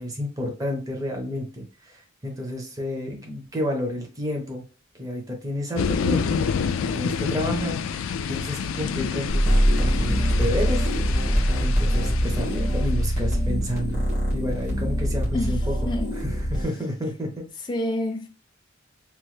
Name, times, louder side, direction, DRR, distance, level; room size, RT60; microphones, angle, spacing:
voice 1, 0.0-4.6 5.0-6.4 6.8-7.8 8.3-10.9 11.6-15.8 16.1-17.4, equal, 20° right, 0.7 m, -30 dB
sound 1, 5.8-13.2, left 6 dB, 80° left, 0.3 m, -28 dB
sound 2, 9.3-16.7, equal, 45° right, 1.4 m, -23 dB
voice 2, 17.7-18.3, left 1 dB, 20° left, 0.5 m, -27 dB
3.0 x 2.2 x 3.2 m
head